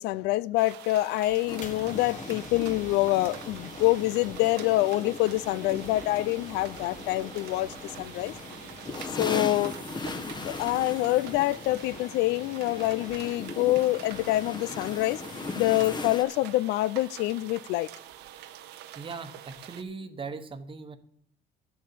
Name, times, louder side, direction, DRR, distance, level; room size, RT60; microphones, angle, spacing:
voice 1, 0.0-8.3 9.1-9.7 10.4-15.2 15.6-17.9, left 17 dB, 90° left, 0.4 m, -26 dB
sound 1, 0.6-19.8, right 11 dB, 85° right, 0.8 m, -46 dB
sound 2, 1.3-16.2, left 4 dB, 45° left, 1.6 m, -47 dB
sound 3, 1.5-16.2, left 3 dB, 25° left, 1.0 m, -39 dB
voice 2, 18.9-21.0, right 4 dB, 30° right, 1.1 m, -39 dB
10.5 x 6.8 x 7.6 m
cardioid pair, 110°, 17 cm